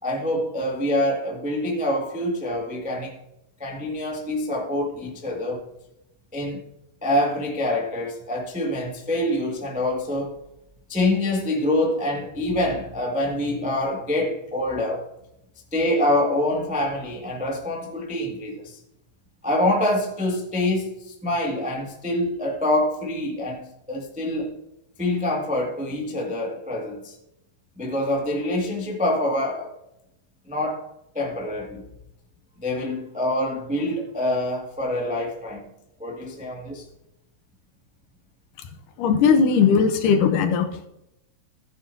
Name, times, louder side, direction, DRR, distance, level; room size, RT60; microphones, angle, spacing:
voice 1, 0.0-3.2 3.6-5.6 6.3-6.6 7.0-10.4 10.9-15.0 15.7-18.8 19.4-24.5 25.0-27.1 27.8-29.7 30.5-30.9 31.1-31.8 32.6-35.6 36.0-36.8, left 1 dB, 10° right, 0.4 m, -25 dB
voice 2, 39.0-40.7, left 6 dB, 75° left, 2.3 m, -18 dB
15.0 x 9.0 x 2.7 m
omnidirectional pair, 4.0 m